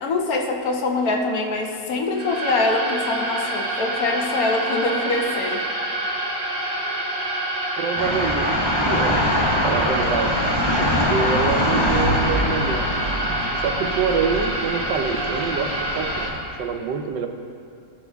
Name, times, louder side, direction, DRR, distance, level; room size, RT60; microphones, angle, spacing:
voice 1, 0.0-5.6, left 2 dB, 60° left, 2 dB, 1.2 m, -24 dB
sound 1, 2.1-16.3, right 1 dB, 30° right, 1.5 m, -27 dB
voice 2, 7.8-9.2 9.6-13.1 13.6-17.3, right 5 dB, 80° right, 5 dB, 1.4 m, -26 dB
sound 2, 8.0-16.4, left 1 dB, 20° left, 0.7 m, -24 dB
15.0 x 6.2 x 3.5 m, 2.5 s
omnidirectional pair, 1.9 m